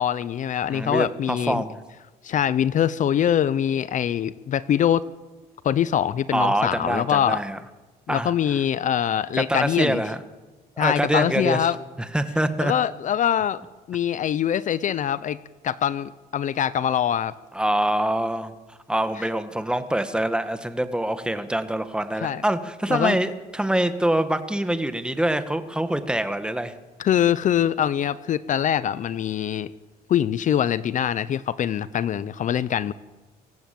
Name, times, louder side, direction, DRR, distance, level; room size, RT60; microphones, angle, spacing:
voice 1, 0.0-1.6 2.2-5.0 5.6-7.4 8.1-10.0 10.8-11.8 12.6-13.6 13.9-15.4 15.6-17.3 22.2-22.4 22.9-23.2 27.0-29.7 30.1-32.9, left 9 dB, 50° left, 17 dB, 0.7 m, -23 dB
voice 2, 0.7-1.8 6.3-7.6 8.1-8.3 9.4-10.2 10.8-11.7 12.0-12.7 17.5-18.5 18.9-26.7, right 1 dB, 5° right, 10 dB, 1.6 m, -25 dB
25.0 x 15.5 x 7.7 m, 1.2 s
cardioid pair, 110°, 17 cm